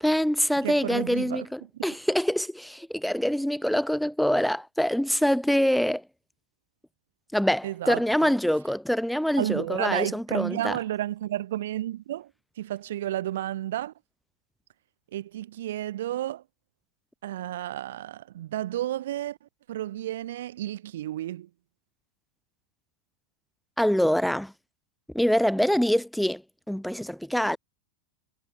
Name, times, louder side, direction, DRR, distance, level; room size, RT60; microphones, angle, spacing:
voice 1, 0.0-6.0 7.3-10.8 23.8-24.5 25.1-26.4 26.7-27.6, equal, ahead, 0.7 m, -25 dB
voice 2, 0.6-1.8 7.6-8.3 9.4-12.3 12.6-13.9 15.1-16.4 17.2-21.5, right 13 dB, 60° right, 0.8 m, -32 dB
figure-of-eight pair, 90°, 0 cm